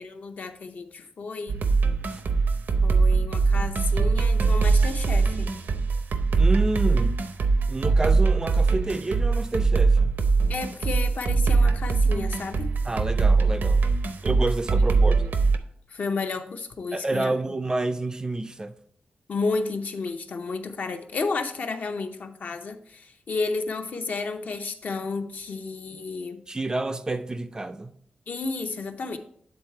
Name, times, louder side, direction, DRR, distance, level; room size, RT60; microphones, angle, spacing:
voice 1, 0.0-1.6 2.8-5.5 10.5-12.7 14.8-15.1 15.9-17.3 19.3-26.4 28.3-29.2, left 4 dB, 60° left, 0.6 m, -32 dB
sound 1, 1.5-15.6, right 4 dB, 80° right, 0.6 m, -22 dB
voice 2, 6.4-7.2 7.7-10.1 12.8-13.8 14.2-15.2 16.9-18.7 26.5-27.9, right 2 dB, 20° right, 0.3 m, -29 dB
8.7 x 3.9 x 4.4 m
wide cardioid pair, 145°, 3 cm